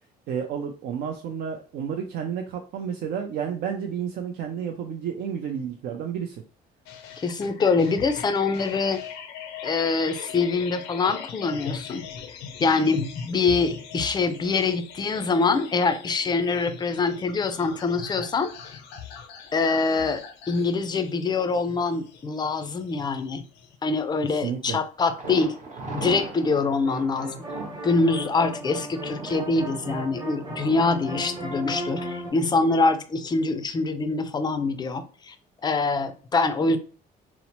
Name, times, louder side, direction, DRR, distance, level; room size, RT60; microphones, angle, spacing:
voice 1, 0.3-6.4 24.2-24.8, right 7 dB, 65° right, 3 dB, 0.4 m, -31 dB
sound 1, 6.9-23.8, left 7 dB, 90° left, 0.5 m, -41 dB
voice 2, 7.2-9.0 9.6-12.1 12.6-18.5 19.5-20.2 20.5-23.4 23.8-25.5 25.9-27.3 27.8-35.3 35.6-36.8, left 4 dB, 25° left, 10 dB, 0.4 m, -24 dB
Thunder, 25.2-32.9 33.2-33.3 33.8-33.9, right 3 dB, 50° right, 0.9 m, -40 dB
sound 2, 26.8-32.3, right 1 dB, 25° right, 0.9 m, -35 dB
2.8 x 2.0 x 2.9 m, 0.38 s
cardioid pair, 110°, 17 cm